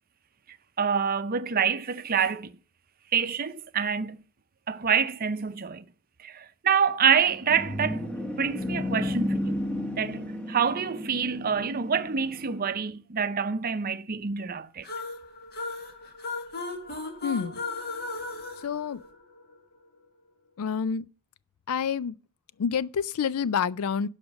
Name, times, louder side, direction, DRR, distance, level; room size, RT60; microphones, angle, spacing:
voice 1, 0.8-2.5 3.1-4.2 4.7-5.8 6.2-8.0 8.4-9.6 10.0-10.2 10.5-14.9, right 7 dB, 40° right, 0.6 m, -26 dB
sound 1, 7.1-12.7, left 1 dB, 5° left, 1.1 m, -33 dB
staccato notes sung, 14.8-19.6, left 3 dB, 45° left, 1.7 m, -36 dB
voice 2, 17.2-17.6 18.6-19.0 20.6-21.1 21.7-22.2 22.6-24.1, left 7 dB, 75° left, 0.4 m, -28 dB
11.5 x 5.1 x 7.1 m
head